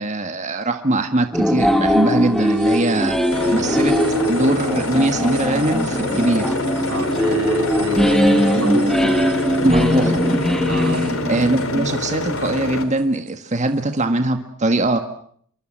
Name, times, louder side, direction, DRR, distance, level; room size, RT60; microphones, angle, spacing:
voice 1, 0.0-3.2 3.5-4.0 4.3-6.5 9.0-9.1 9.6-10.2 11.3-15.0, right 2 dB, 30° right, 1.6 m, -21 dB
sound 1, 1.3-11.9, equal, ahead, 2.4 m, -20 dB
sound 2, 2.1-14.0, right 12 dB, 85° right, 5.4 m, -42 dB
sound 3, 3.3-12.8, left 2 dB, 65° left, 3.2 m, -26 dB
voice 2, 6.9-9.0 10.7-11.1, right 2 dB, 60° right, 2.2 m, -30 dB
27.5 x 23.5 x 7.6 m
head